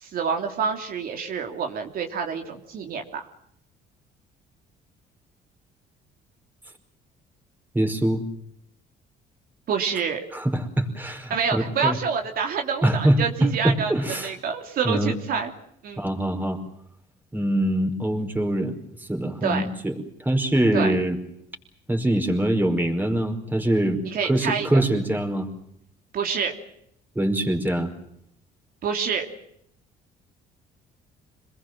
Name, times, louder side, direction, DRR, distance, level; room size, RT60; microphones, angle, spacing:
voice 1, 0.0-3.3 9.7-10.2 11.3-15.5 15.8-16.1 19.4-19.6 20.7-20.9 24.1-24.7 26.1-26.5 28.8-29.3, right 6 dB, 60° right, 3 dB, 3.1 m, -27 dB
voice 2, 7.7-8.2 10.3-12.0 12.8-14.3 14.8-15.1 16.0-16.6 17.3-19.9 20.2-21.2 21.9-25.5 27.1-27.9, right 1 dB, 10° right, 5 dB, 5.0 m, -23 dB
27.5 x 20.5 x 7.5 m, 0.75 s
cardioid pair, 110°, 17 cm